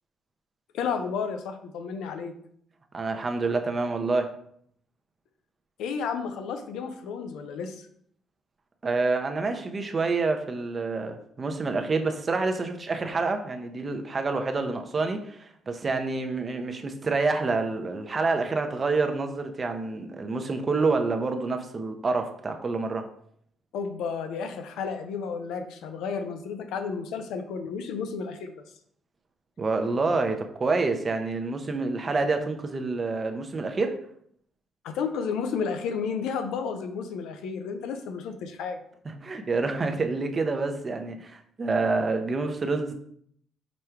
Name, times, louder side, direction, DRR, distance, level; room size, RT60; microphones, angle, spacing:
voice 1, 0.7-2.3 5.8-7.9 23.7-28.6 34.8-38.8, left 6 dB, 90° left, 0.5 m, -32 dB
voice 2, 2.9-4.4 8.8-23.1 29.6-34.0 39.2-42.9, right 3 dB, 35° right, 0.6 m, -27 dB
5.1 x 2.3 x 4.4 m
cardioid pair, 90°, 0 cm